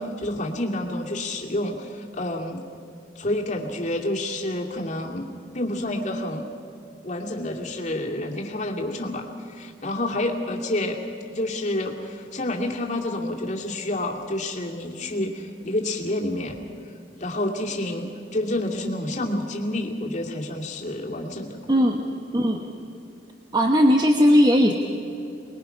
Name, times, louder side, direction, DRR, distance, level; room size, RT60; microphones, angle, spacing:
voice 1, 0.0-2.6 3.2-5.3 5.5-6.5 7.0-11.0 11.3-16.6 17.2-21.6, left 1 dB, 40° left, 0 dB, 2.5 m, -29 dB
voice 2, 21.7-22.0 22.3-22.6 23.5-24.7, equal, 25° right, 2 dB, 1.2 m, -18 dB
24.5 x 21.0 x 5.8 m, 2.6 s
head